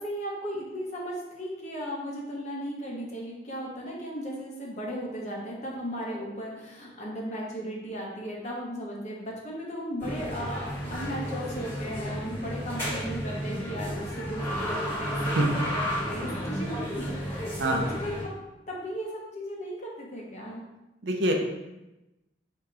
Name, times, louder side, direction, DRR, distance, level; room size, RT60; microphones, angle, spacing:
voice 1, 0.0-15.3 15.7-18.3 18.7-20.6, equal, 40° left, -3 dB, 0.9 m, -36 dB
sound 1, 10.0-18.2, equal, 15° left, 1.5 m, -32 dB
voice 2, 15.2-15.6 17.6-17.8 21.0-21.3, right 1 dB, 65° right, 1 dB, 0.6 m, -25 dB
4.5 x 2.8 x 3.6 m, 0.99 s
head